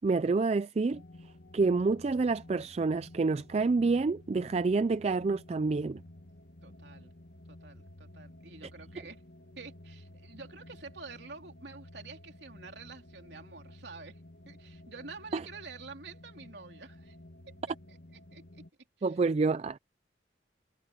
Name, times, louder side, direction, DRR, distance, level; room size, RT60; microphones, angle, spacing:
voice 1, 0.0-1.0 1.5-6.0 15.3-15.4 19.0-19.8, right 4 dB, 35° right, 0.3 m, -28 dB
sound 1, 0.9-18.7, left 1 dB, 60° left, 1.8 m, -52 dB
voice 2, 6.6-7.1 7.5-9.2 9.6-14.2 14.5-17.2 17.5-17.6 17.9-18.0 18.3-18.6 19.0-19.2, right 4 dB, 65° right, 3.5 m, -48 dB
head